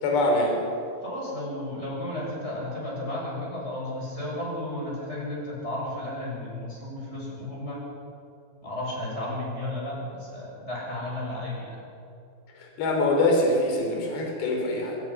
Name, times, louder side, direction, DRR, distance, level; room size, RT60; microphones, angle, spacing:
voice 1, 0.0-0.6 12.6-15.0, left 2 dB, 75° left, 1 dB, 5.6 m, -24 dB
voice 2, 1.0-7.8 8.6-11.8, left 1 dB, 15° left, -4 dB, 7.3 m, -33 dB
23.5 x 20.0 x 6.0 m, 2.6 s
omnidirectional pair, 4.9 m